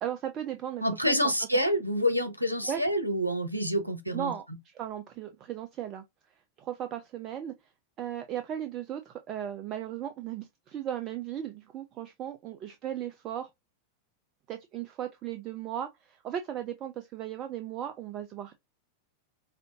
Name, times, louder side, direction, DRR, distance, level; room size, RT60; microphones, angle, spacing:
voice 1, 0.0-1.3 2.6-2.8 4.1-6.0 6.6-7.5 8.0-13.5 14.5-18.6, right 10 dB, 35° right, 0.5 m, -36 dB
voice 2, 0.8-4.3, equal, 90° right, 0.8 m, -27 dB
5.1 x 2.7 x 2.4 m
figure-of-eight pair, 90°, 0 cm